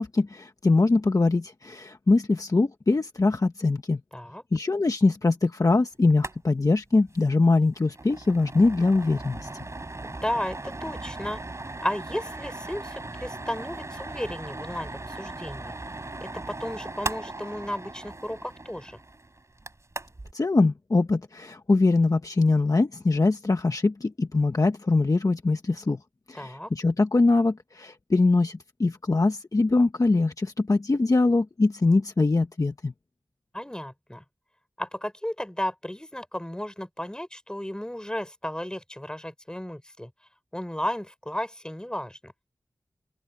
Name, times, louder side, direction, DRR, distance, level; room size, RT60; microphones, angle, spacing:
voice 1, 0.0-4.0 4.5-9.5 20.3-26.0 26.3-32.9, left 3 dB, 45° left, 1.3 m, -23 dB
voice 2, 4.1-4.4 10.0-11.4 11.8-15.7 16.2-19.0 26.3-26.7 33.5-34.2 34.8-40.1 40.5-42.3, left 1 dB, 10° left, 6.2 m, -34 dB
sound 1, 6.1-6.4 6.6-6.7 7.1-7.3 7.6-20.3, right 2 dB, 35° right, 5.9 m, -38 dB
open air
wide cardioid pair, 75°, 8 cm